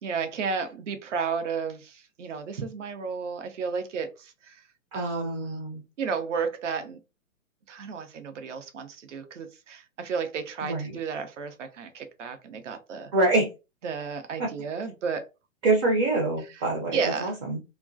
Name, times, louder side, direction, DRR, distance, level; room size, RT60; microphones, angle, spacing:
voice 1, 0.0-4.6 4.9-5.6 6.0-7.0 7.7-13.1 13.8-15.3 16.9-17.3, right 5 dB, 65° right, 0.7 m, -33 dB
voice 2, 4.9-5.8 10.6-10.9 13.1-13.5 14.4-14.5 15.6-17.6, right 2 dB, 25° right, 0.5 m, -25 dB
2.3 x 2.1 x 2.4 m
figure-of-eight pair, 120°, 40 cm